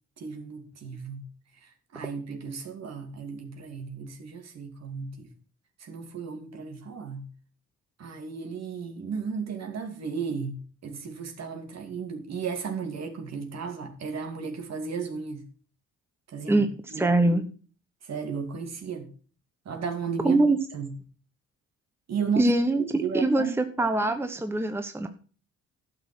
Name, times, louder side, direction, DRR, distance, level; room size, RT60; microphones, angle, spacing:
voice 1, 0.2-1.3 1.6-5.3 5.8-7.3 8.0-15.5 16.3-16.6 16.9-17.4 18.0-19.1 19.6-21.0 22.1-22.5 22.8-23.5, right 5 dB, 60° right, 2.6 m, -34 dB
voice 2, 17.0-17.4 20.2-20.6 22.4-25.1, right 2 dB, 10° right, 1.0 m, -23 dB
11.0 x 6.4 x 6.2 m
cardioid pair, 90°, 30 cm